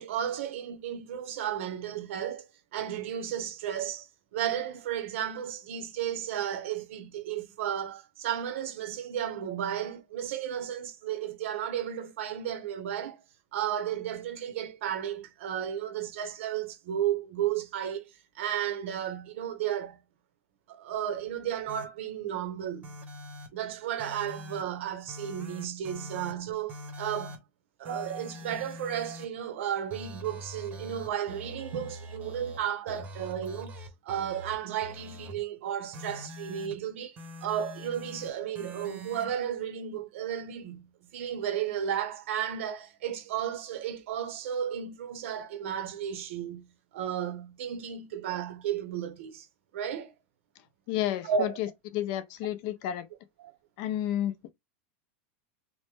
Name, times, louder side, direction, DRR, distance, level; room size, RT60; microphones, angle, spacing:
voice 1, 0.0-13.2 13.5-20.0 20.7-22.9 23.5-27.4 27.8-33.7 34.0-46.7 46.9-49.5 49.7-50.1 51.2-51.6 53.4-53.5, right 9 dB, 75° right, 0.8 m, -33 dB
sound 1, 21.7-21.8 22.8-23.5 24.0-24.6 25.1-26.3 26.7-27.4 27.8-29.2 29.9-32.6 32.9-34.5 34.8-35.4 35.9-36.8 37.2-38.3 38.5-39.3, left 1 dB, 25° right, 0.8 m, -44 dB
voice 2, 50.9-51.7 51.9-53.1 53.8-54.5, left 12 dB, 45° left, 0.5 m, -31 dB
3.0 x 2.1 x 3.3 m
supercardioid pair, 160°, 7 cm